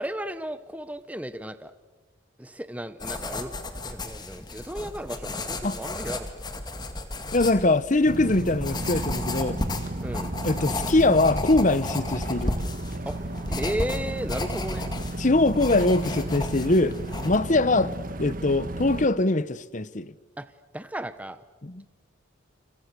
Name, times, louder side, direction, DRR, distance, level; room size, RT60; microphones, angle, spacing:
voice 1, 0.0-1.7 2.4-3.5 3.8-6.3 10.0-10.3 13.1-14.9 20.4-20.5 20.7-21.4, right 1 dB, 5° right, 0.9 m, -34 dB
sound 1, 3.0-17.4, left 2 dB, 20° left, 2.1 m, -34 dB
voice 2, 7.3-9.6 10.4-12.5 15.2-16.9 17.2-17.9 18.2-20.1 21.6-21.8, left 2 dB, 40° left, 0.8 m, -22 dB
sound 2, 8.1-19.1, right 1 dB, 45° right, 1.5 m, -34 dB
29.0 x 29.0 x 6.9 m
head